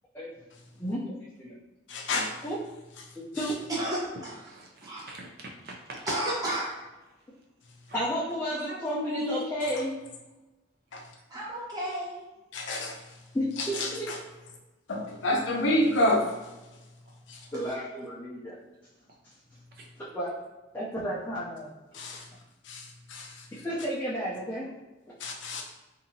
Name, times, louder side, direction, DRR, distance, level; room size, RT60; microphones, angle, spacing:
voice 1, 0.8-1.5 2.4-2.6 3.2-3.7 7.9-9.9 13.3-14.1 17.5-18.5 20.0-20.4 20.7-22.0 23.6-24.7, equal, 10° left, -9 dB, 0.4 m, -32 dB
voice 2, 1.9-2.3 12.5-13.0 13.8-14.1 14.9-16.3 17.3-17.4 21.9-22.2 22.7-23.4 25.2-25.6, left 1 dB, 70° left, 1 dB, 0.5 m, -28 dB
voice 3, 3.7-4.4 4.8-5.0 6.1-6.7 11.3-12.2, right 1 dB, 20° right, -6 dB, 0.8 m, -32 dB
voice 4, 4.5-5.7 7.9-8.0 8.7-9.5, left 1 dB, 50° right, 0 dB, 0.5 m, -37 dB
2.8 x 2.5 x 2.7 m, 1.1 s
head